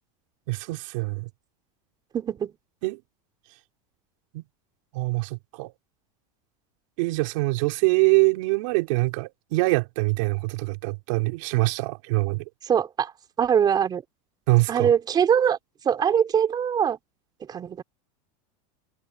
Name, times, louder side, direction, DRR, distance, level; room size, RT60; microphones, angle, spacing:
voice 1, 0.5-1.3 2.8-3.0 4.3-4.4 4.9-5.7 7.0-12.4 14.5-14.9, right 25 dB, 65° right, 3.9 m, -24 dB
voice 2, 2.1-2.5 12.6-13.1 13.4-14.0 14.7-15.6 15.8-17.0 17.5-17.8, right 8 dB, 25° right, 4.4 m, -22 dB
supercardioid pair, 155°, 18 cm